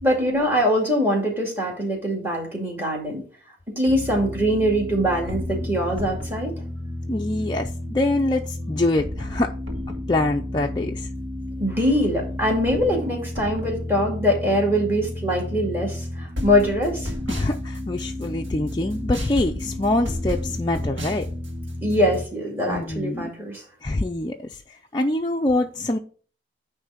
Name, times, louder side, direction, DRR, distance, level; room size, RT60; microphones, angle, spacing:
voice 1, 0.0-3.2 3.8-6.6 11.6-17.1 21.8-23.6, equal, 10° right, 0 dB, 2.3 m, -23 dB
sound 1, 3.9-22.2, left 1 dB, 85° right, 1.8 m, -31 dB
voice 2, 7.1-9.5 10.1-11.1 17.3-21.3 22.7-23.3 23.8-26.0, left 2 dB, 25° left, 1 dB, 0.4 m, -25 dB
9.7 x 3.2 x 5.7 m, 0.41 s
head